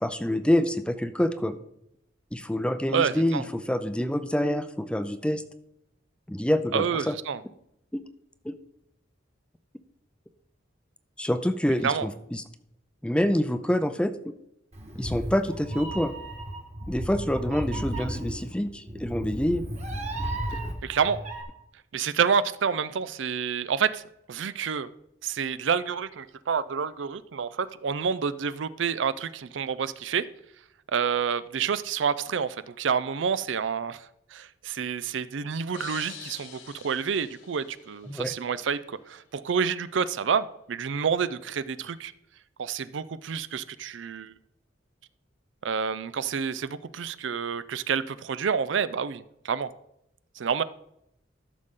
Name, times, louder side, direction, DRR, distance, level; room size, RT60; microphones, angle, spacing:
voice 1, 0.0-1.6 2.3-5.4 6.3-7.1 7.9-8.0 8.4-8.5 11.2-12.4 13.0-14.1 15.0-16.2 16.9-19.6 38.1-38.3, left 1 dB, 5° left, 10 dB, 0.5 m, -26 dB
voice 2, 2.9-3.4 6.7-7.4 11.8-12.1 20.8-21.2 21.9-24.0 24.3-24.9 25.2-30.3 30.9-34.1 34.3-42.1 42.6-44.3 45.6-49.7 50.4-50.6, right 6 dB, 75° right, 15 dB, 0.5 m, -28 dB
Meow, 14.7-21.4, right 1 dB, 35° right, 1.4 m, -34 dB
sound 1, 35.7-38.5, left 8 dB, 80° left, 1.0 m, -45 dB
13.5 x 6.5 x 3.7 m, 0.79 s
head